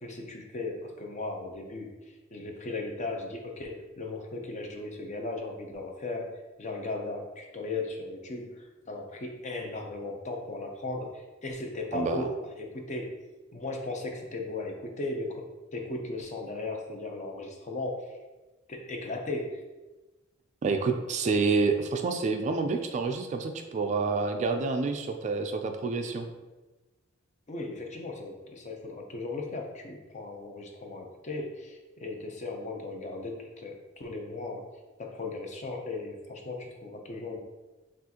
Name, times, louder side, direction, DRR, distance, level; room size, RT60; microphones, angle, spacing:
voice 1, 0.0-1.9 2.3-6.3 6.6-13.1 13.5-15.5 15.7-18.1 18.7-19.6 27.5-34.7 35.0-37.4, left 2 dB, 35° left, 2 dB, 0.6 m, -37 dB
voice 2, 11.9-12.3 20.6-26.3, right 4 dB, 35° right, 6 dB, 0.3 m, -28 dB
6.0 x 2.5 x 2.8 m, 1.1 s
head